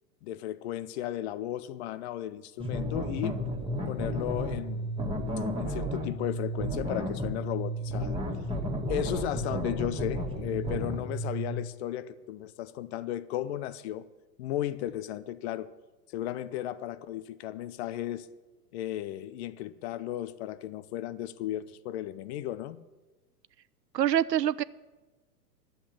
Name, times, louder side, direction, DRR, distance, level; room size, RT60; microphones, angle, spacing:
voice 1, 0.2-3.4 3.9-4.9 5.6-8.2 8.8-14.0 14.4-15.7 16.1-18.3 18.7-22.8, left 12 dB, 40° left, 0.7 m, -35 dB
sound 1, 2.6-11.6, equal, 10° right, 2.0 m, -32 dB
voice 2, 23.9-24.6, right 11 dB, 80° right, 0.7 m, -25 dB
11.5 x 7.9 x 8.7 m
hypercardioid pair, 110°, 49 cm